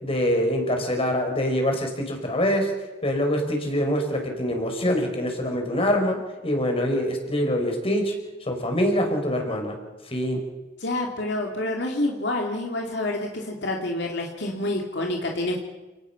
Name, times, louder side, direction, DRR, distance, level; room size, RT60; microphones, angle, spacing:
voice 1, 0.0-2.7 3.0-8.1 8.5-9.7 10.1-10.4, equal, 30° left, 3 dB, 5.0 m, -24 dB
voice 2, 10.8-15.6, left 1 dB, 65° left, 1 dB, 2.6 m, -28 dB
29.0 x 18.5 x 5.9 m, 1.2 s
head